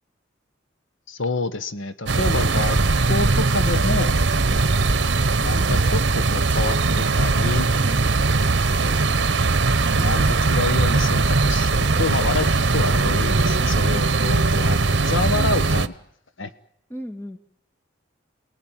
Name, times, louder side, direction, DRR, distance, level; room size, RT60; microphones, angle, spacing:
voice 1, 1.1-4.2 5.4-7.7 9.9-15.9 16.4-16.5, left 3 dB, 80° left, 11 dB, 1.4 m, -28 dB
sound 1, 2.1-15.9, right 3 dB, 60° right, 1.0 m, -20 dB
voice 2, 7.8-8.2 16.9-17.4, equal, 10° left, 5 dB, 2.2 m, -38 dB
29.0 x 20.0 x 9.2 m, 0.73 s
head